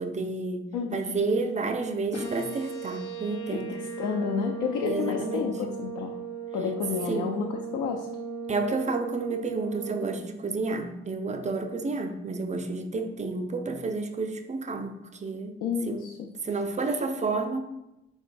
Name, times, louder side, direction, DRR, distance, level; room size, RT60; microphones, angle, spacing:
voice 1, 0.0-3.7 4.8-5.5 7.1-7.3 8.5-15.6 15.9-16.0 16.4-17.6, right 3 dB, 20° right, 6 dB, 0.5 m, -30 dB
sound 1, 2.1-10.1, right 5 dB, 80° left, 0.8 m, -37 dB
voice 2, 3.5-6.2 6.5-8.1 15.6-16.3, left 6 dB, 55° left, 3 dB, 0.5 m, -30 dB
4.3 x 2.3 x 4.2 m, 0.92 s
figure-of-eight pair, 40°, 35 cm